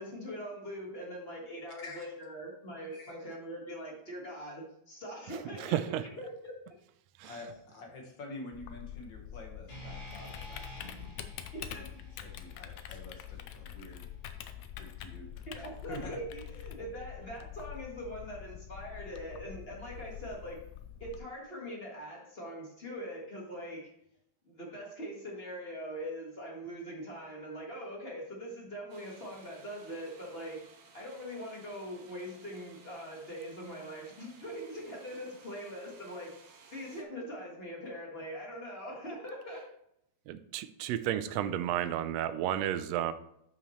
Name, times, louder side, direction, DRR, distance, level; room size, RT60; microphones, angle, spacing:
voice 1, 0.0-6.5 11.5-11.9 15.5-20.6 21.0-23.9 24.4-30.6 30.9-36.4 36.7-39.6, equal, 30° left, -2 dB, 1.2 m, -42 dB
voice 2, 1.8-2.1 2.9-3.2 7.2-10.9 11.9-14.1 14.8-15.3 15.6-16.2, left 2 dB, 50° left, 1 dB, 1.8 m, -47 dB
voice 3, 5.6-6.0 7.2-7.3 40.3-43.1, right 11 dB, 80° right, 12 dB, 1.5 m, -32 dB
Typing, 8.5-21.2, left 11 dB, 90° left, 2.0 m, -45 dB
sound 1, 9.7-13.9, right 1 dB, 70° left, 3.6 m, -51 dB
sound 2, 28.9-37.0, right 4 dB, 60° right, 1.6 m, -58 dB
11.5 x 5.7 x 3.1 m, 0.75 s
omnidirectional pair, 3.3 m